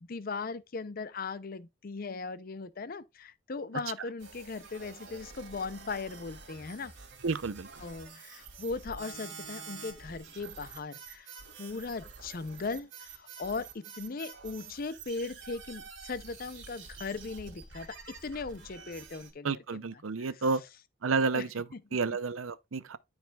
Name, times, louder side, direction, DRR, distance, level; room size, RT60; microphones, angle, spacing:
voice 1, 0.0-6.9 7.8-11.3 11.6-20.4 21.3-21.5 21.7-21.8, left 4 dB, 45° left, 0.5 m, -38 dB
sound 1, 4.2-19.3, right 5 dB, 65° right, 2.8 m, -48 dB
voice 2, 7.2-7.7 19.4-20.6 21.0-21.7 21.9-23.0, right 4 dB, 85° right, 0.6 m, -30 dB
12.5 x 4.9 x 2.3 m
head